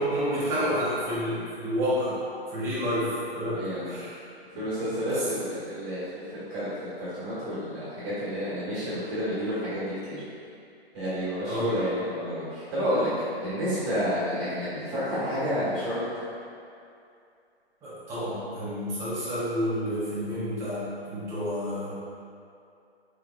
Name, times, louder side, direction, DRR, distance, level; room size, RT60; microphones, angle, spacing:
voice 1, 0.0-2.1 2.5-4.2 5.0-5.3 11.5-11.7 17.8-21.9, equal, 10° right, -10 dB, 0.6 m, -29 dB
voice 2, 3.5-3.9 4.5-10.2 10.9-16.0, equal, 25° right, -12 dB, 1.4 m, -30 dB
4.6 x 3.7 x 2.3 m, 2.5 s
hypercardioid pair, 145°, 32 cm